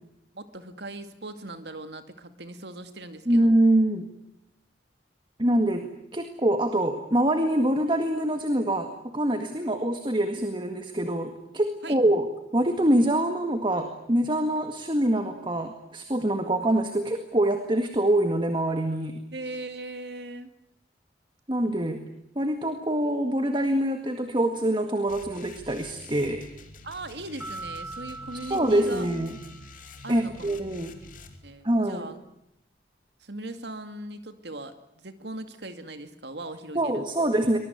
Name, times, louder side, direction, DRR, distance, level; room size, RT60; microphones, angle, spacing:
voice 1, 0.3-3.5 9.6-9.7 11.8-12.0 19.3-20.5 26.8-29.1 30.0-30.6 31.0-32.2 33.2-37.0, right 2 dB, 60° right, 9 dB, 2.4 m, -39 dB
voice 2, 3.3-4.0 5.4-12.3 12.5-19.2 21.5-22.0 22.4-26.5 28.5-29.4 30.1-30.9 31.6-32.1 36.8-37.6, right 1 dB, 25° right, 6 dB, 1.9 m, -25 dB
sound 1, 25.1-31.4, left 2 dB, 45° left, 2.9 m, -47 dB
sound 2, 27.4-30.2, right 3 dB, 10° right, 2.0 m, -42 dB
23.5 x 21.5 x 9.5 m, 0.81 s
head